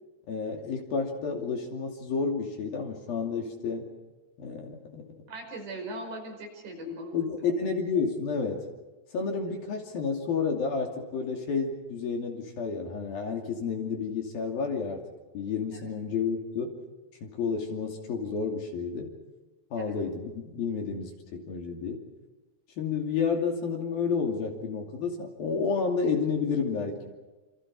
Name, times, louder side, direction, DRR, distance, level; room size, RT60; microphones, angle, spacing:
voice 1, 0.3-3.9 4.4-5.2 6.8-8.7 9.1-15.0 15.3-16.8 17.2-19.2 19.7-22.1 22.8-27.1, left 5 dB, 55° left, 2 dB, 4.2 m, -30 dB
voice 2, 5.3-7.2 15.7-15.8 19.8-19.9, right 2 dB, 60° right, 2 dB, 7.4 m, -39 dB
28.5 x 28.0 x 4.9 m, 1.2 s
omnidirectional pair, 5.5 m